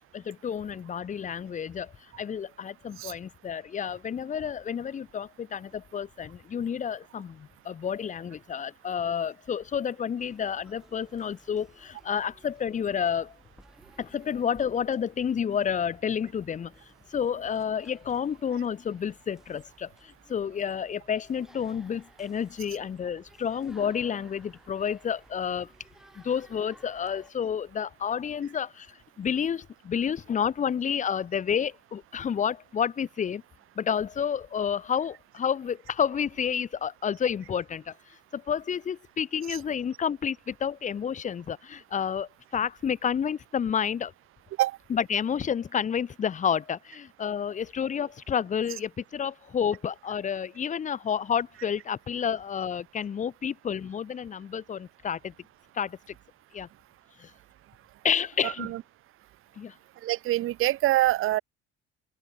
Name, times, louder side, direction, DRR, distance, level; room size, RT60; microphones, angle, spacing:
voice 1, 0.0-13.4 14.0-16.7 17.1-25.7 26.2-33.4 33.8-44.1 44.9-55.3 55.7-56.1 56.5-56.7 57.2-57.3 58.0-58.7 59.6-59.7, left 7 dB, 20° left, 0.5 m, -30 dB
sound 1, 10.2-27.3, equal, ahead, 6.0 m, -58 dB
voice 2, 58.4-58.8 60.0-61.4, right 15 dB, 35° right, 0.4 m, -25 dB
figure-of-eight pair, 55°, 38 cm